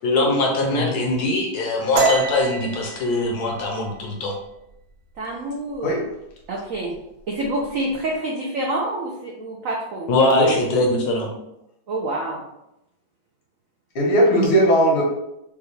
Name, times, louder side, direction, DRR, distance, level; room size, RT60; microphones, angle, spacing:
voice 1, 0.0-4.3 10.1-11.3 14.3-14.5, left 2 dB, 65° left, 1 dB, 1.1 m, -21 dB
sound 1, 1.9-5.4 5.7-6.0 6.4-6.9 7.2-8.0, right 4 dB, 60° right, 0.9 m, -27 dB
voice 2, 5.2-6.0 6.5-6.9 7.3-10.1 11.9-12.4, right 1 dB, 85° right, -1 dB, 0.7 m, -27 dB
voice 3, 14.0-15.0, right 1 dB, 80° left, -2 dB, 2.0 m, -18 dB
5.2 x 2.3 x 3.2 m, 0.84 s
omnidirectional pair, 2.2 m